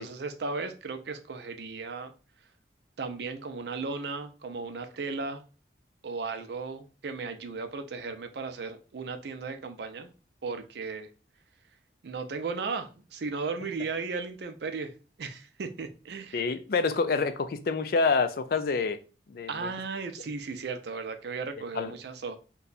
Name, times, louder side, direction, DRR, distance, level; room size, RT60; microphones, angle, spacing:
voice 1, 0.0-2.1 3.0-5.4 6.0-10.1 10.4-11.1 12.0-14.9 15.2-16.4 19.5-22.4, right 4 dB, 65° right, 0.5 m, -36 dB
voice 2, 16.3-19.0 19.3-19.7 21.7-21.9, left 4 dB, 55° left, 0.3 m, -27 dB
2.7 x 2.2 x 3.9 m
head